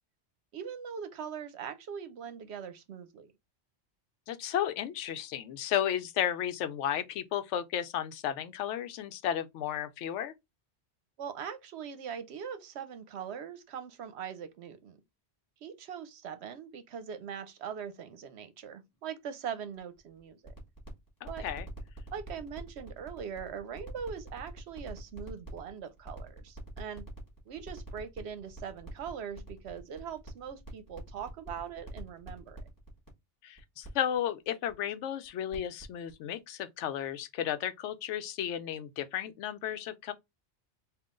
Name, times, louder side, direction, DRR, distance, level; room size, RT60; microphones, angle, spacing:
voice 1, 0.5-3.3 11.2-15.0 15.6-20.5 21.3-21.4 22.1-27.1 27.5-32.6, right 7 dB, 70° right, 0.9 m, -41 dB
voice 2, 4.3-10.3 21.2-21.7 33.4-40.1, left 10 dB, 90° left, 0.9 m, -33 dB
sound 1, 19.8-33.1 33.6-33.9 34.1-34.2 34.7-34.8 35.2-35.8 36.1-36.2, right 3 dB, 15° left, 1.5 m, -47 dB
3.7 x 2.5 x 3.6 m
omnidirectional pair, 1.2 m